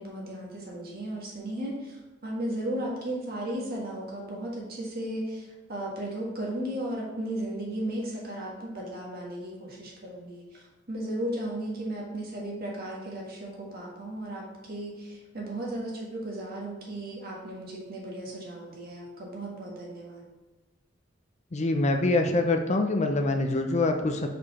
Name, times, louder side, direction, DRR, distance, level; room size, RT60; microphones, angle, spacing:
voice 1, 0.0-2.0 2.2-5.4 5.7-20.3, right 1 dB, 50° right, -2 dB, 1.6 m, -35 dB
voice 2, 21.5-24.3, left 2 dB, 35° left, 5 dB, 0.5 m, -25 dB
5.0 x 4.5 x 4.2 m, 1.2 s
head